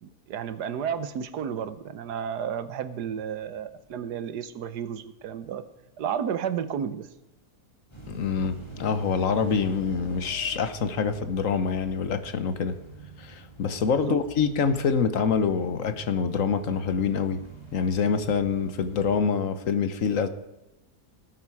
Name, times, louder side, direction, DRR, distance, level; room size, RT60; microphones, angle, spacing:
voice 1, 0.0-5.6 6.0-7.1 14.0-14.2, right 8 dB, 80° right, 12 dB, 1.5 m, -32 dB
sound 1, 7.9-19.2, right 3 dB, 15° left, 2.1 m, -46 dB
voice 2, 8.1-12.8 13.2-17.4 17.7-20.3, left 6 dB, 60° left, 11 dB, 1.2 m, -26 dB
18.5 x 9.5 x 4.8 m, 0.98 s
omnidirectional pair, 1.7 m